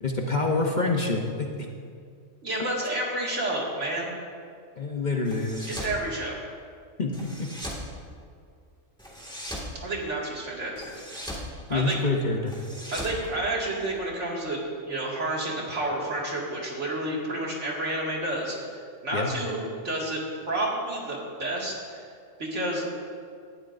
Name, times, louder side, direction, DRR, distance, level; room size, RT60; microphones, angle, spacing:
voice 1, 0.0-1.5 4.8-5.7 7.0-7.5 11.7-12.5 19.1-19.3, left 3 dB, 40° left, 1 dB, 0.9 m, -26 dB
voice 2, 2.4-4.1 5.7-6.4 9.8-10.8 11.1-11.4 11.7-12.0 12.9-14.6 14.9-20.2 20.5-22.1 22.4-22.9, right 1 dB, 65° right, -3 dB, 2.5 m, -30 dB
sound 1, 5.2-6.0 7.1-7.9 9.0-9.7 10.8-11.5 12.5-14.0, equal, 5° left, 1.9 m, -38 dB
18.0 x 12.5 x 2.6 m, 2.2 s
omnidirectional pair, 1.3 m